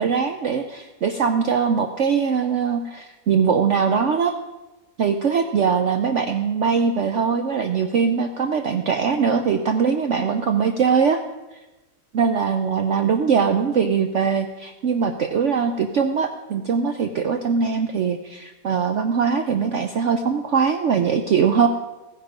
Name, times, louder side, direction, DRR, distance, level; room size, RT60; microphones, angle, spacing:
voice 1, 0.0-4.3 5.0-11.2 12.1-21.7, right 6 dB, 60° right, 6 dB, 0.8 m, -21 dB
14.5 x 10.0 x 5.1 m, 1.1 s
omnidirectional pair, 1.8 m